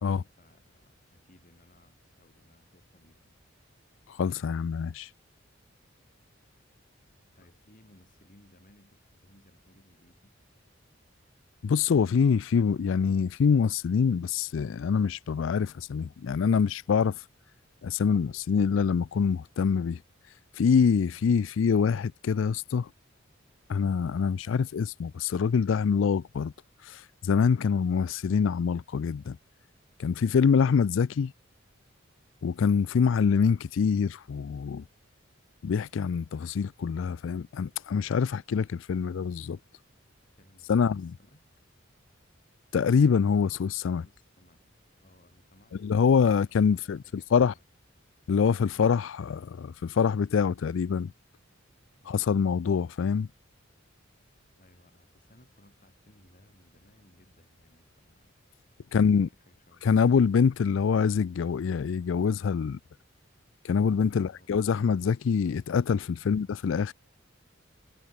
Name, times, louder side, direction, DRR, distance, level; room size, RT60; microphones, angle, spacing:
voice 1, 0.0-3.4 7.3-10.4 21.1-21.4 40.4-41.4 43.8-44.7 45.0-47.6 52.0-52.3 54.6-58.3 58.9-60.3 64.1-64.5 66.2-66.6, left 1 dB, 45° left, 6.6 m, -61 dB
voice 2, 4.2-5.1 11.6-17.2 17.8-20.0 20.6-22.9 23.7-26.5 26.9-29.4 30.0-31.3 32.4-34.8 35.6-39.6 40.7-41.1 42.7-44.0 45.8-47.0 47.3-47.5 48.3-51.1 52.1-53.3 58.9-59.3 59.8-62.8 63.6-66.9, left 6 dB, 70° left, 0.4 m, -25 dB
head